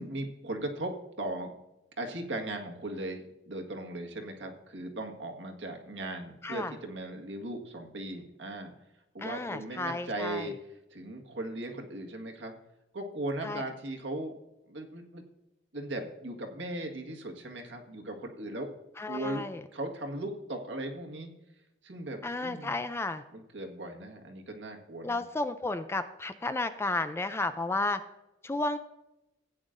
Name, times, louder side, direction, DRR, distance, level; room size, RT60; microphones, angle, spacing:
voice 1, 0.0-1.5 2.0-8.7 9.1-10.6 10.9-12.5 12.9-14.4 14.7-15.2 15.7-18.7 19.1-19.4 19.7-21.3 21.8-22.7 23.3-25.2, right 1 dB, 80° right, 3 dB, 1.7 m, -38 dB
voice 2, 6.4-6.7 9.2-10.5 13.4-13.6 19.0-19.6 22.2-23.2 25.0-28.0 28.4-28.8, left 2 dB, 15° left, 10 dB, 0.4 m, -32 dB
15.5 x 9.0 x 2.6 m, 0.93 s
head